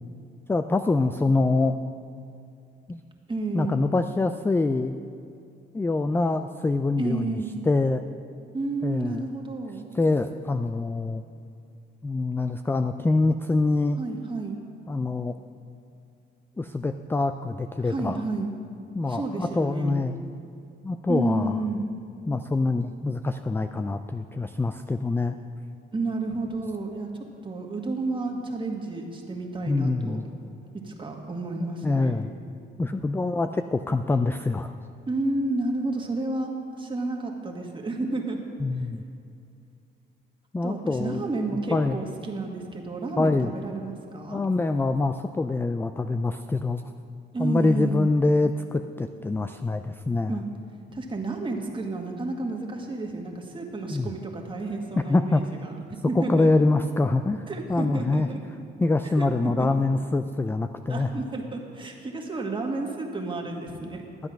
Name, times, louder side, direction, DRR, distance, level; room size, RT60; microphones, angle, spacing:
voice 1, 0.5-1.8 2.9-3.0 3.5-4.9 5.7-7.4 7.7-8.1 8.8-9.3 9.9-11.2 12.0-14.0 14.9-15.4 16.6-18.2 18.9-20.2 20.8-21.6 22.3-25.4 29.6-30.2 31.6-32.3 32.8-34.7 38.6-39.0 40.5-41.2 41.7-42.0 43.2-43.5 44.3-46.8 47.4-50.4 53.9-54.1 55.1-55.5 56.2-58.3 58.8-61.1, left 3 dB, 10° left, 9 dB, 0.3 m, -25 dB
voice 2, 3.3-3.8 7.0-7.5 8.5-9.8 14.0-14.6 17.8-18.5 19.1-19.9 21.1-21.8 25.9-27.1 27.4-30.3 30.8-32.2 35.1-38.4 40.6-44.4 47.3-48.1 50.3-50.4 50.9-56.5 57.5-58.4 59.0-59.7 60.9-64.0, right 2 dB, 25° right, 1 dB, 1.8 m, -31 dB
12.0 x 7.9 x 5.9 m, 2.5 s
cardioid pair, 90°, 20 cm